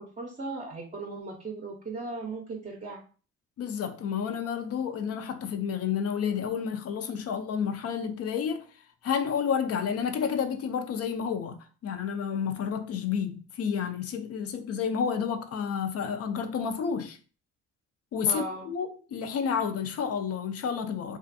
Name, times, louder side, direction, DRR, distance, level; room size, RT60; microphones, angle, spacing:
voice 1, 0.2-3.0 18.3-18.7, right 3 dB, 25° right, 0.6 m, -37 dB
voice 2, 3.6-8.7 9.0-17.2 18.1-21.2, left 7 dB, 55° left, 0.4 m, -30 dB
2.5 x 2.3 x 2.5 m
cardioid pair, 90°, 30 cm